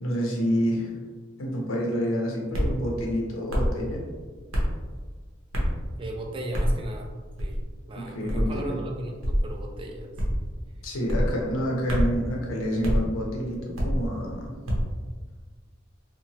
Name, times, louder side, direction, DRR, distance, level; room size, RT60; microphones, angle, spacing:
voice 1, 0.0-0.9 1.4-4.0 8.0-8.8 10.8-14.5, equal, 85° left, -1 dB, 0.7 m, -28 dB
sound 1, 2.5-2.8 3.5-3.8 4.5-4.8 5.5-5.8 6.5-6.8 7.4-7.7 8.3-8.5 9.2-9.5 10.2-10.5 11.1-11.3 11.9-12.2 12.8-13.0 13.7-14.1 14.7-14.9, equal, 80° right, 0.7 m, -25 dB
voice 2, 6.0-7.1 7.4-10.4 10.6-10.8, right 1 dB, 25° right, 1 dB, 0.3 m, -36 dB
2.8 x 2.1 x 2.7 m, 1.4 s
head